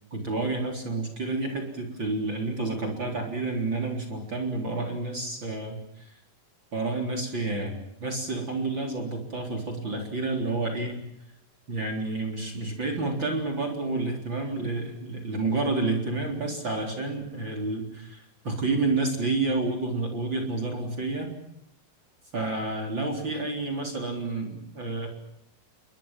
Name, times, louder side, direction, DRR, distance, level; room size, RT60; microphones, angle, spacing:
voice 1, 0.1-6.1 6.7-11.0 11.7-21.3 22.3-25.1, right 3 dB, 30° right, 4 dB, 4.0 m, -29 dB
30.0 x 22.0 x 7.4 m, 0.77 s
omnidirectional pair, 4.9 m